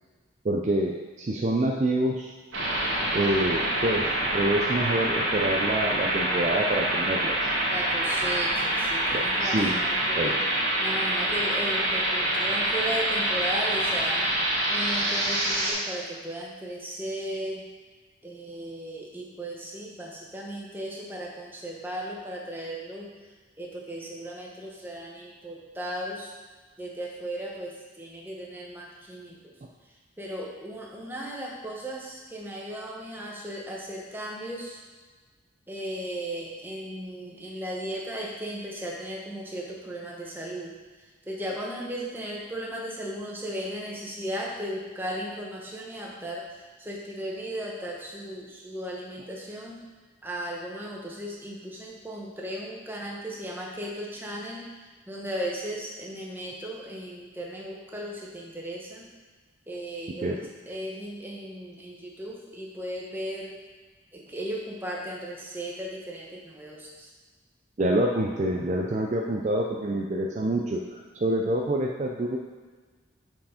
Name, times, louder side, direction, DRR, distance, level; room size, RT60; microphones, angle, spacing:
voice 1, 0.4-2.3 3.1-7.5 9.1-9.7 10.2-10.3 60.2-60.4 67.8-72.4, right 1 dB, 35° right, 0 dB, 0.4 m, -27 dB
sound 1, 2.5-15.7, right 1 dB, 75° right, 1.8 m, -26 dB
voice 2, 7.7-10.4 10.8-17.7 18.2-23.1 23.6-26.3 26.8-29.5 30.2-34.8 35.7-40.7 41.0-49.8 50.2-59.1 59.7-63.6 64.1-67.1, equal, 10° right, -2 dB, 0.9 m, -36 dB
5.7 x 4.8 x 5.0 m, 1.4 s
head